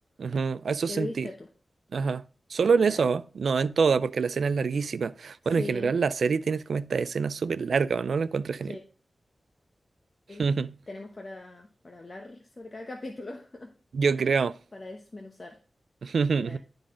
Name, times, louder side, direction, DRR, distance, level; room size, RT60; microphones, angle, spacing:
voice 1, 0.2-1.3 1.9-2.2 2.5-8.8 10.4-10.7 13.9-14.6 16.0-16.6, right 5 dB, 85° right, 0.3 m, -26 dB
voice 2, 0.9-1.5 2.8-3.1 5.6-5.9 8.7-8.8 10.3-10.4 10.9-13.7 14.0-14.2 14.7-15.6 16.4-16.6, left 2 dB, 40° left, 0.9 m, -40 dB
11.5 x 3.9 x 3.7 m
wide cardioid pair, 75°, 0 cm